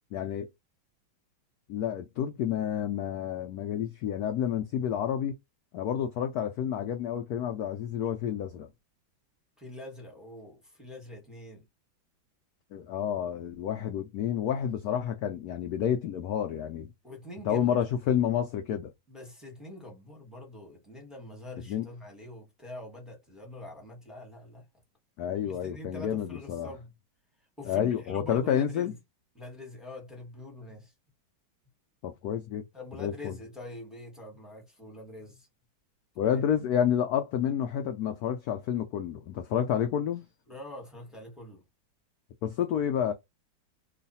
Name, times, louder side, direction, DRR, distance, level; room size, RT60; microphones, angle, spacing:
voice 1, 0.1-0.5 1.7-5.3 5.7-8.7 12.7-16.9 17.5-18.9 21.7-21.8 25.2-26.7 27.7-28.9 32.0-32.6 33.0-33.3 36.2-40.2 42.4-43.1, left 9 dB, 80° left, 0.8 m, -29 dB
voice 2, 9.6-11.7 17.0-17.8 19.1-24.7 25.4-26.9 27.6-29.0 29.3-30.9 32.7-35.5 36.2-36.4 40.5-41.6, left 1 dB, ahead, 0.9 m, -45 dB
3.1 x 2.4 x 4.0 m
omnidirectional pair, 2.2 m